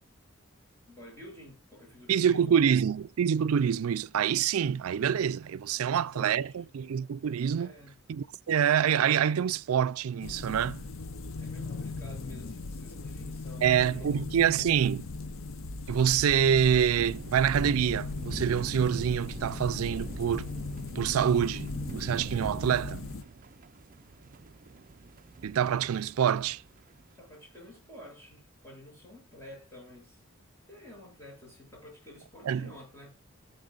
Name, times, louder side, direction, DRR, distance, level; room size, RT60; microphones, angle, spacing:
voice 1, 0.9-2.6 5.8-6.6 7.6-8.0 11.4-14.1 27.2-30.2 30.7-33.1, left 1 dB, 15° left, 7.4 m, -50 dB
voice 2, 2.1-7.7 8.1-10.8 13.6-15.1 15.9-20.5 21.0-23.0 25.4-26.6 32.4-32.7, right 8 dB, 90° right, 0.4 m, -26 dB
sound 1, 10.2-23.2, left 3 dB, 70° left, 0.7 m, -39 dB
sound 2, 17.0-27.1, right 3 dB, 40° right, 0.5 m, -43 dB
18.5 x 6.9 x 2.4 m
head